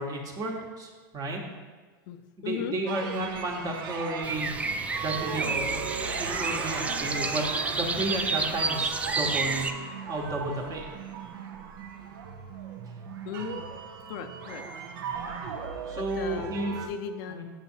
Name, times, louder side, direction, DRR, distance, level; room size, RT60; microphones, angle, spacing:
voice 1, 0.0-1.4 2.4-5.8 6.2-9.7 10.1-10.8 15.9-16.7 17.3-17.4, right 2 dB, 30° right, 0 dB, 1.2 m, -32 dB
voice 2, 2.1-2.8 13.2-13.7 14.1-14.6 16.0-17.4, left 8 dB, 60° left, 9 dB, 0.4 m, -37 dB
sound 1, 2.9-16.9, right 5 dB, 75° right, 0.6 m, -37 dB
sound 2, 4.2-9.7, right 3 dB, 10° right, 0.3 m, -30 dB
7.0 x 5.7 x 2.7 m, 1.4 s
hypercardioid pair, 105°, 12 cm